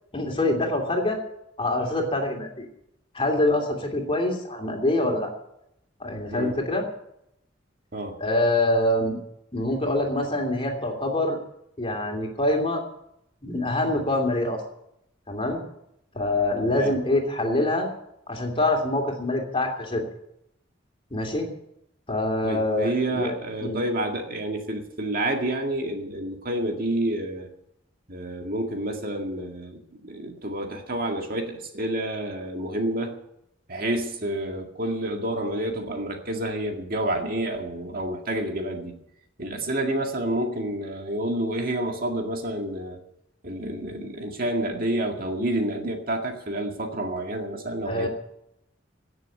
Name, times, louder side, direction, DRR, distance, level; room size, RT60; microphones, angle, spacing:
voice 1, 0.1-1.2 1.6-2.7 3.1-5.3 6.0-6.9 8.2-9.2 9.5-11.4 11.8-12.8 13.4-14.6 15.3-15.6 16.1-17.9 18.3-20.0 21.1-21.5 22.1-23.3 23.6-23.8 47.8-48.1, left 1 dB, 30° left, 1 dB, 2.8 m, -25 dB
voice 2, 16.6-17.0 22.4-27.5 28.1-33.2 33.7-39.0 39.4-43.0 43.4-48.1, right 1 dB, 50° right, 3 dB, 2.1 m, -29 dB
17.5 x 7.1 x 9.1 m, 0.79 s
head